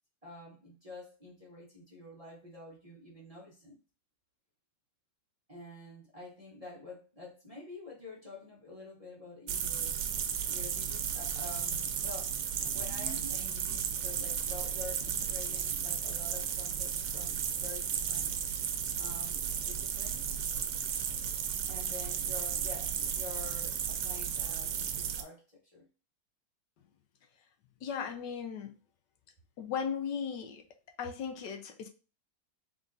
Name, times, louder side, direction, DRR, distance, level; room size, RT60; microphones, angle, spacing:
voice 1, 0.2-3.8 5.5-10.0 10.5-18.3 19.0-20.3 21.7-25.4 25.7-25.9, left 3 dB, 25° right, 0.9 m, -48 dB
sound 1, 9.5-25.2, right 8 dB, 90° right, 1.3 m, -34 dB
voice 2, 27.8-28.7 29.6-30.6 31.0-31.9, left 7 dB, 80° left, 1.3 m, -36 dB
3.8 x 3.7 x 2.5 m
omnidirectional pair, 1.9 m